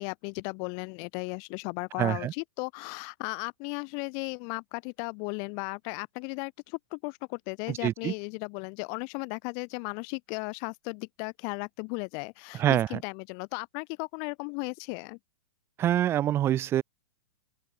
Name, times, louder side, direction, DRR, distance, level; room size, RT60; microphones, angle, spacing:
voice 1, 0.0-15.2, left 40 dB or more, 45° left, 4.1 m, -36 dB
voice 2, 2.0-2.3 7.8-8.1 12.6-12.9 15.8-16.8, right 12 dB, 25° right, 1.1 m, -25 dB
open air
hypercardioid pair, 125°, 9 cm